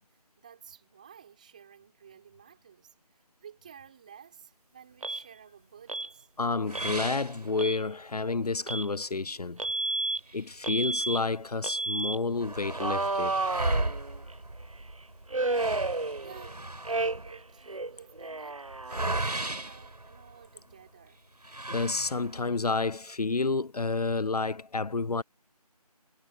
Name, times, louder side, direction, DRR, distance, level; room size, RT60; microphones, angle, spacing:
voice 1, 0.1-6.3 16.2-16.6 16.9-21.2, right 8 dB, 10° right, 4.1 m, -53 dB
Alarm, 5.0-5.2 5.9-6.1 6.7-7.0 7.5-7.8 8.7-8.9 9.6-10.2 10.6-11.2 11.6-12.2 12.8-14.3 15.3-16.5 16.8-17.4 17.7-19.4, right 2 dB, 55° right, 1.0 m, -31 dB
voice 2, 6.4-9.6 10.3-13.3 21.7-25.2, left 3 dB, 75° left, 0.7 m, -30 dB
sound 1, 6.7-8.1 8.6-8.7 9.1-9.2 10.0-11.3 11.7-11.8 12.0-20.7 21.4-22.6, right 2 dB, 90° right, 4.6 m, -36 dB
figure-of-eight pair, 175°, 20 cm